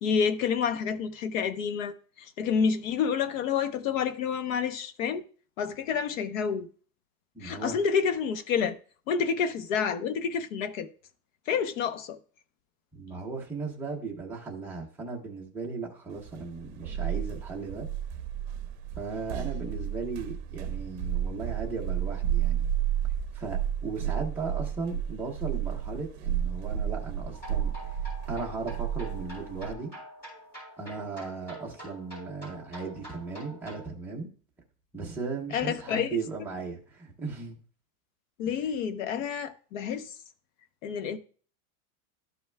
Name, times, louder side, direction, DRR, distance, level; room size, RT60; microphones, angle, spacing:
voice 1, 0.0-1.9 2.4-5.2 5.6-6.7 7.4-8.8 9.1-10.9 11.5-12.2 35.5-36.2 38.4-40.1 40.8-41.2, left 6 dB, 60° left, 0.9 m, -28 dB
voice 2, 7.3-7.8 12.9-17.9 19.0-22.7 23.3-28.0 28.3-29.9 30.8-34.3 34.9-37.6, right 4 dB, 5° right, 0.6 m, -36 dB
sound 1, 16.3-29.7, right 10 dB, 45° right, 0.9 m, -32 dB
sound 2, 27.3-33.9, equal, 20° left, 4.0 m, -46 dB
12.5 x 5.6 x 2.2 m
supercardioid pair, 180°, 45 cm